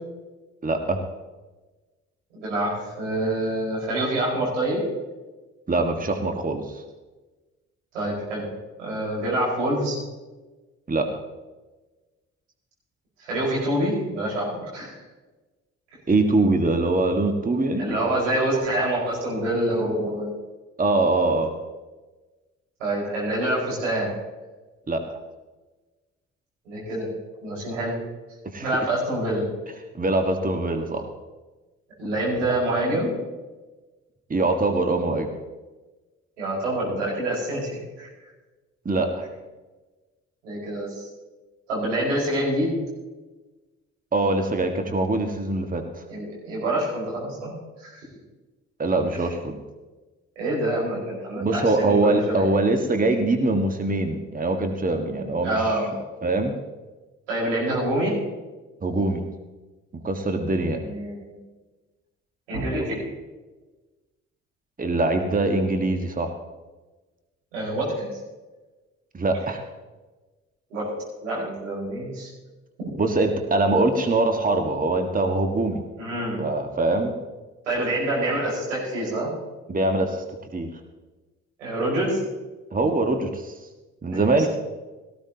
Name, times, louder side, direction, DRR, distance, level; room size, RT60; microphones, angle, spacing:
voice 1, 0.6-1.0 5.7-6.8 10.9-11.2 16.1-17.9 20.8-21.5 24.9-25.0 28.5-28.7 29.9-31.0 34.3-35.3 38.8-39.3 44.1-46.0 48.8-49.6 51.4-55.8 56.2-56.5 58.8-59.2 60.0-60.8 64.8-66.3 69.1-69.6 73.0-75.8 76.4-77.1 79.7-80.2 80.5-80.7 82.7-83.5 84.0-84.5, right 2 dB, 25° right, 5 dB, 1.5 m, -23 dB
voice 2, 2.3-4.8 7.9-8.5 8.8-10.0 13.2-15.0 17.8-20.3 22.8-24.1 26.6-27.1 27.4-28.0 28.6-29.5 32.0-33.1 36.4-38.1 40.4-41.1 41.7-42.7 46.1-47.5 47.8-48.0 50.3-52.5 55.4-56.0 57.3-58.1 60.8-61.3 62.5-63.0 67.5-68.1 70.7-70.9 71.2-72.3 76.0-76.4 77.6-79.3 81.6-82.2 84.1-84.5, right 1 dB, 85° right, -5 dB, 5.1 m, -26 dB
18.0 x 14.5 x 2.9 m, 1.2 s
figure-of-eight pair, 45°, 36 cm